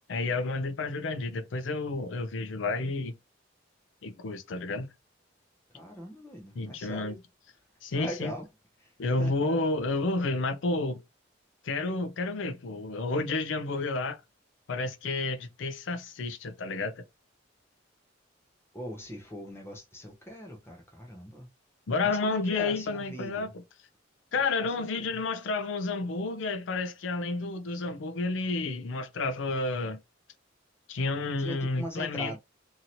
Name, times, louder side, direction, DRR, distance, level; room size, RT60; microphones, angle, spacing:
voice 1, 0.1-3.2 4.0-4.9 6.6-7.1 7.8-8.3 9.0-11.0 11.6-14.2 14.7-17.0 21.9-23.5 24.3-30.0 30.9-32.3, left 3 dB, 75° left, 0.5 m, -30 dB
voice 2, 5.7-7.2 8.0-8.5 8.8-8.9 9.2-9.8 18.7-21.5 22.0-23.5 24.4-24.5 24.8-25.2 31.4-32.4, equal, 15° left, 0.7 m, -41 dB
2.9 x 2.8 x 2.6 m
head